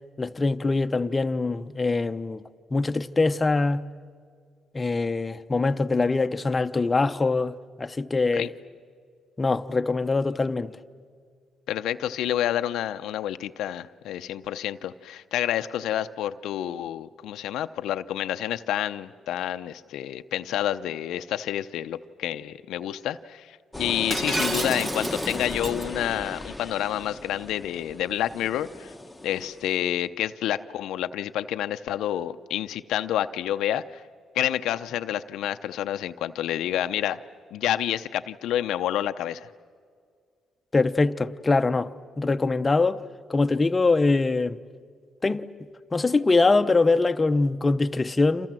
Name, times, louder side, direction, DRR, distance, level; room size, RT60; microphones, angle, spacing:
voice 1, 0.2-2.4 2.7-3.8 4.7-8.5 9.4-10.7 40.7-43.0 43.3-44.6 45.2-45.5 45.9-48.5, left 3 dB, 25° left, 0.8 m, -23 dB
voice 2, 11.7-28.9 29.2-34.0 34.3-37.2 37.5-39.5, left 11 dB, 85° left, 0.6 m, -29 dB
sound 1, 23.7-29.8, left 1 dB, 5° left, 1.2 m, -35 dB
Shatter, 24.1-25.8, right 2 dB, 30° right, 1.1 m, -31 dB
29.0 x 27.0 x 7.6 m
cardioid pair, 90°, 0 cm